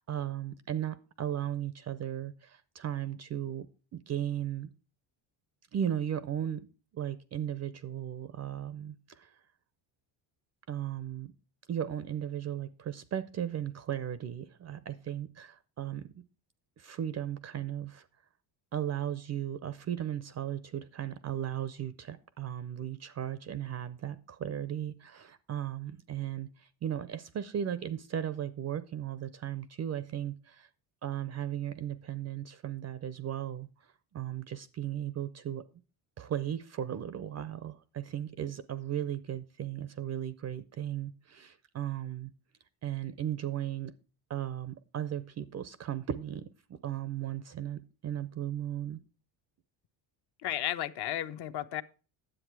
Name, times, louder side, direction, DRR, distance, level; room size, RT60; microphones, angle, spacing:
voice 1, 0.0-3.7 3.9-4.7 5.7-6.7 6.9-9.4 10.7-11.3 11.7-16.1 16.8-18.1 18.7-30.7 31.0-35.6 36.2-42.3 42.8-43.9 44.3-49.0, right 10 dB, 35° right, 0.4 m, -36 dB
voice 2, 50.4-51.8, left 12 dB, 60° left, 0.8 m, -33 dB
10.0 x 7.8 x 4.5 m
cardioid pair, 155°, 46 cm